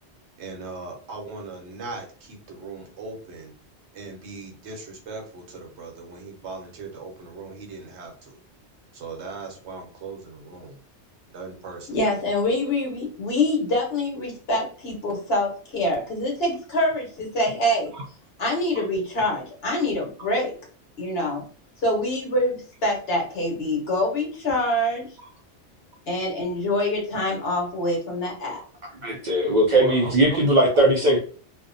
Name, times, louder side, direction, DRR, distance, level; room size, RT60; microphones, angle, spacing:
voice 1, 0.4-3.5 3.9-8.4 8.9-10.8 11.3-12.0 17.9-18.0 18.7-18.8 29.8-30.4 30.7-31.2, right 4 dB, 80° right, 3 dB, 1.0 m, -38 dB
voice 2, 11.9-17.9 18.4-20.5 21.0-21.5 21.8-25.1 26.1-28.6, left 1 dB, 60° left, 0 dB, 1.1 m, -25 dB
voice 3, 29.0-31.2, right 1 dB, 55° right, -1 dB, 0.5 m, -19 dB
2.6 x 2.1 x 2.5 m, 0.41 s
omnidirectional pair, 1.2 m